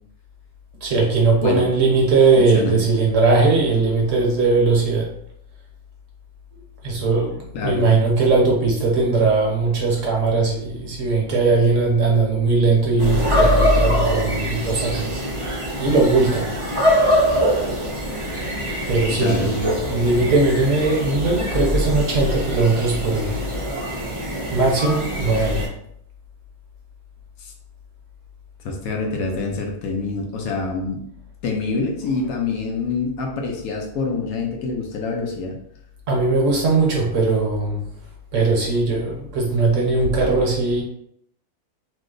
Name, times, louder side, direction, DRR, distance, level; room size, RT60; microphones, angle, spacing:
voice 1, 0.8-5.1 6.8-15.1 15.8-16.5 18.9-23.4 24.5-25.6 36.1-37.8 38.3-40.8, right 3 dB, 60° right, -2 dB, 1.0 m, -19 dB
voice 2, 2.4-2.8 7.5-7.9 19.2-19.5 27.4-27.5 28.6-31.0 31.4-35.6, left 4 dB, 75° left, 1 dB, 1.0 m, -26 dB
sound 1, 13.0-25.7, equal, 35° right, 0.5 m, -23 dB
2.9 x 2.0 x 3.7 m, 0.69 s
omnidirectional pair, 1.6 m